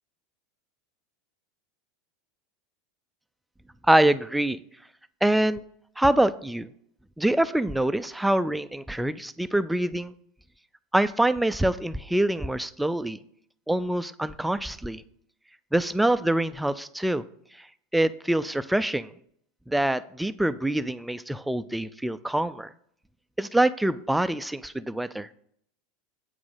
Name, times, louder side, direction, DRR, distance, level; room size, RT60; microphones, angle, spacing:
voice 1, 3.9-4.6 5.2-5.6 6.0-6.7 7.2-10.1 10.9-13.2 13.7-15.0 15.7-17.2 17.9-19.1 19.7-22.7 23.4-25.3, right 1 dB, 5° right, 14 dB, 0.4 m, -25 dB
8.2 x 5.0 x 5.6 m, 0.68 s
supercardioid pair, 120°, 0 cm